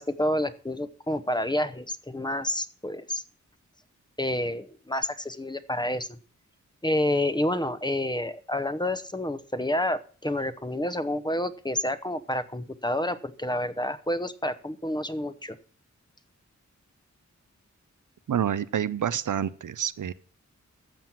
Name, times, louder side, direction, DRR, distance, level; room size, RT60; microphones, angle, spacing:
voice 1, 0.0-3.2 4.2-6.2 6.8-15.6, left 1 dB, 15° left, 12 dB, 0.8 m, -29 dB
voice 2, 18.3-20.1, right 9 dB, 90° right, 15 dB, 0.6 m, -28 dB
13.0 x 7.6 x 5.9 m, 0.41 s
wide cardioid pair, 105°, 30 cm